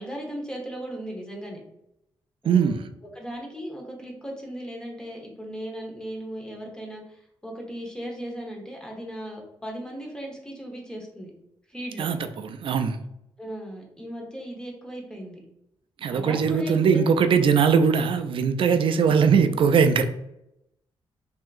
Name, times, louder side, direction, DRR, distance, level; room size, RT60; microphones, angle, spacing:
voice 1, 0.0-1.6 2.4-2.8 3.1-11.3 11.7-12.1 13.4-15.4 16.1-17.1 19.3-19.6, equal, 10° left, 0 dB, 0.9 m, -37 dB
voice 2, 2.4-2.8 12.0-13.0 16.0-20.0, right 6 dB, 60° right, 9 dB, 0.3 m, -21 dB
3.4 x 2.7 x 2.4 m, 0.84 s
cardioid pair, 100°, 10 cm